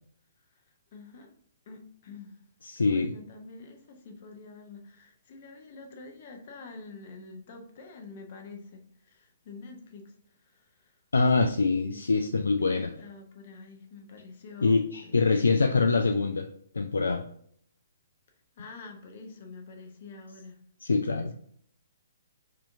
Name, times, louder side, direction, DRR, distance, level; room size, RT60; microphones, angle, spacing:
voice 1, 0.9-1.3 1.7-2.4 2.7-11.0 11.8-12.0 12.5-16.0 18.6-20.6 21.1-21.3, left 3 dB, 45° left, 4 dB, 0.9 m, -47 dB
voice 2, 2.6-3.1 11.1-12.9 14.6-16.5 16.7-17.3 20.8-21.3, left 4 dB, 70° left, 6 dB, 0.3 m, -24 dB
4.9 x 2.8 x 3.5 m, 0.63 s
figure-of-eight pair, 125°, 0 cm